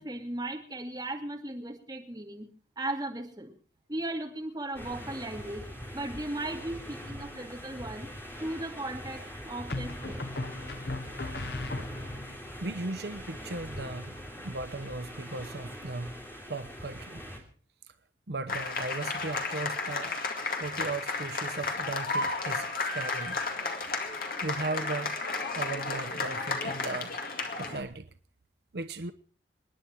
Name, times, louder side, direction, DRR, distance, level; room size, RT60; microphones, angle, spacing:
voice 1, 0.0-2.5 2.8-3.5 3.9-8.1 8.4-10.3, right 1 dB, 20° right, 2.4 m, -37 dB
sound 1, 4.7-17.4, equal, 15° left, 3.2 m, -42 dB
sound 2, 7.0-7.6 9.7-12.4, left 2 dB, 70° left, 1.1 m, -38 dB
voice 2, 12.6-14.2 14.4-16.2 16.5-17.2 18.3-20.1 20.6-23.4 24.4-25.2 25.5-27.1 27.6-28.1 28.7-29.1, right 3 dB, 65° right, 0.8 m, -37 dB
sound 3, 18.5-27.8, left 3 dB, 55° left, 2.2 m, -33 dB
28.0 x 10.0 x 4.6 m
head